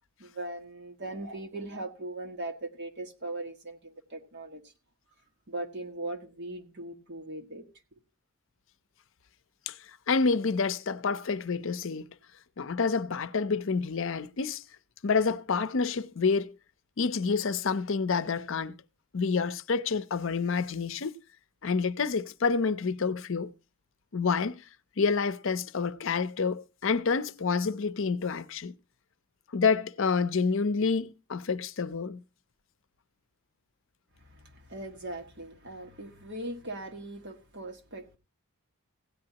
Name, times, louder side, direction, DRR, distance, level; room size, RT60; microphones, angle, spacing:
voice 1, 0.2-4.7 5.5-7.7 7.9-8.0 34.2-38.2, right 2 dB, 55° right, 1.6 m, -39 dB
voice 2, 10.1-12.1 12.6-14.6 15.0-16.5 17.0-18.7 19.1-21.1 21.6-23.5 24.1-24.6 25.0-28.7 29.5-32.2, left 5 dB, 60° left, 0.6 m, -28 dB
16.5 x 9.5 x 2.9 m
head